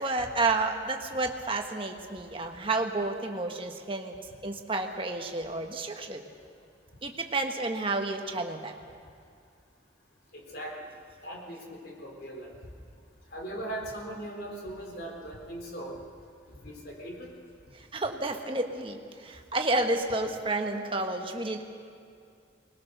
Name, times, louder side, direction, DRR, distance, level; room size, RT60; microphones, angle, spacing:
voice 1, 0.0-4.2 4.4-6.2 7.0-8.7 17.9-21.6, right 2 dB, 30° right, 4 dB, 1.4 m, -30 dB
voice 2, 11.2-12.5 13.3-16.0 16.6-17.3, right 1 dB, 55° left, 0 dB, 4.0 m, -39 dB
21.0 x 20.5 x 6.7 m, 2.4 s
head